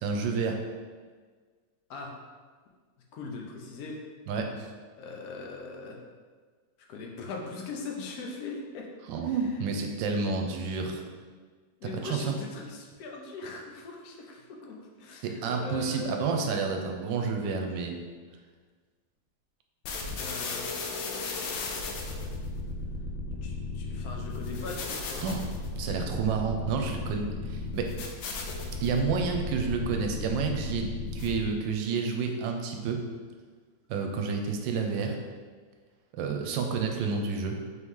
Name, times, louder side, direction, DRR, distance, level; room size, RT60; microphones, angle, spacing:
voice 1, 0.0-0.6 4.3-4.7 9.1-11.0 12.0-12.4 15.2-18.0 25.2-25.4 25.8-27.9 28.8-33.0 33.9-35.2 36.1-37.6, right 5 dB, 80° right, 3 dB, 1.3 m, -30 dB
voice 2, 3.1-4.0 5.0-6.0 6.9-8.9 9.2-9.6 10.1-10.3 11.8-16.2 20.1-22.3 23.4-25.3 36.8-37.1, left 3 dB, 65° left, 0 dB, 1.0 m, -41 dB
sound 1, 19.8-31.6, left 3 dB, 85° left, 1.3 m, -35 dB
3.9 x 3.1 x 3.6 m, 1.5 s
omnidirectional pair, 2.0 m